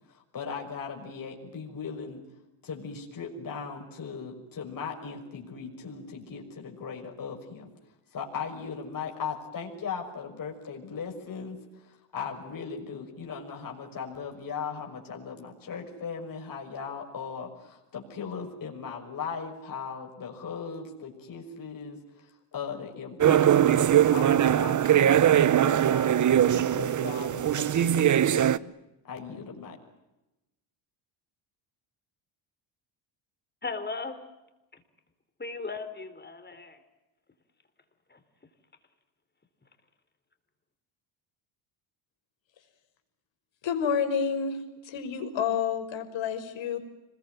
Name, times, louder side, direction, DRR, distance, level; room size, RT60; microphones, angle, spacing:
voice 1, 0.1-2.2 2.6-7.7 8.1-28.7 29.1-29.8, left 6 dB, 40° left, 1 dB, 6.3 m, -38 dB
sound 1, 23.2-28.6, right 10 dB, 35° right, 0.9 m, -21 dB
voice 2, 33.6-34.2 35.4-36.8 38.1-38.2, left 4 dB, 20° left, 9 dB, 4.0 m, -36 dB
voice 3, 43.6-44.6 44.8-46.8, left 7 dB, 60° left, 7 dB, 5.7 m, -29 dB
26.5 x 21.5 x 9.3 m, 0.97 s
cardioid pair, 115°, 50 cm